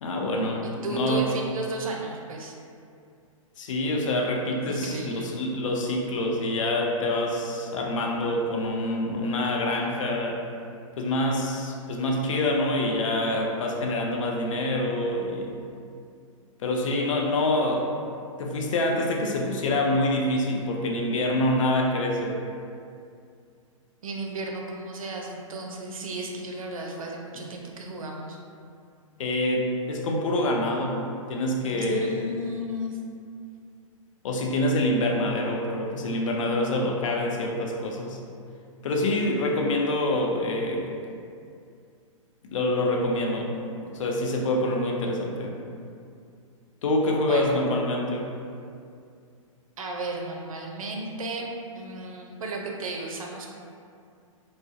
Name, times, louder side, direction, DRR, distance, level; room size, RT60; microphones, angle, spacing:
voice 1, 0.0-1.3 3.6-10.4 11.0-15.6 16.6-17.9 18.4-22.4 29.2-31.0 31.3-32.3 34.2-38.2 38.8-41.0 42.4-43.5 43.9-45.6 46.8-48.3, left 1 dB, 65° left, 0 dB, 0.5 m, -26 dB
voice 2, 0.6-2.6 4.7-5.3 24.0-28.4 31.7-33.0 47.1-47.6 49.8-53.5, right 2 dB, 80° right, 0 dB, 0.4 m, -34 dB
2.3 x 2.0 x 2.6 m, 2.4 s
hypercardioid pair, 125°, 18 cm